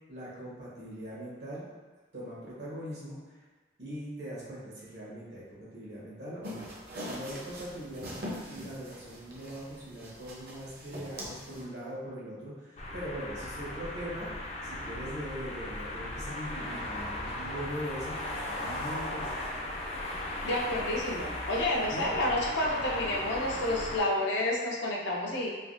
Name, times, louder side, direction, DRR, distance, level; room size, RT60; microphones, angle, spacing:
voice 1, 0.1-1.7 2.1-3.4 3.8-6.7 6.9-19.4 21.9-22.1, equal, 75° right, -8 dB, 1.1 m, -41 dB
sound 1, 6.4-11.6, equal, 55° right, 0.6 m, -43 dB
sound 2, 12.8-24.0, left 1 dB, 35° left, 0.3 m, -37 dB
voice 2, 20.4-25.5, left 1 dB, 85° left, -2 dB, 0.6 m, -30 dB
3.3 x 2.2 x 2.5 m, 1.3 s
head